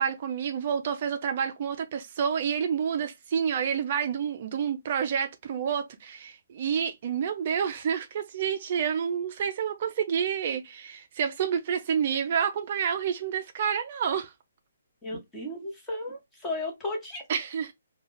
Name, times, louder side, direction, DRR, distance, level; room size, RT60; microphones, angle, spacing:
voice 1, 0.0-14.3 17.3-17.7, right 7 dB, 45° right, 0.3 m, -29 dB
voice 2, 15.0-17.2, left 2 dB, 10° left, 1.0 m, -34 dB
2.3 x 2.2 x 3.1 m
hypercardioid pair, 145°, 0 cm